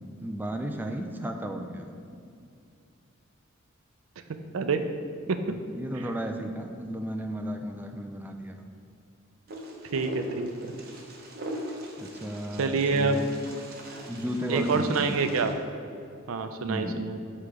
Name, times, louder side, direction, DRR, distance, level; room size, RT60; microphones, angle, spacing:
voice 1, 0.2-1.9 5.5-8.6 12.0-13.3 14.1-15.2 16.6-17.0, equal, 10° right, 4 dB, 0.3 m, -34 dB
Wind, 9.5-15.5, right 1 dB, 50° right, 0.9 m, -40 dB
voice 2, 9.9-10.5 12.6-13.2 14.5-15.5 16.3-17.2, right 4 dB, 75° right, 7 dB, 0.4 m, -26 dB
7.8 x 3.2 x 4.7 m, 2.5 s
head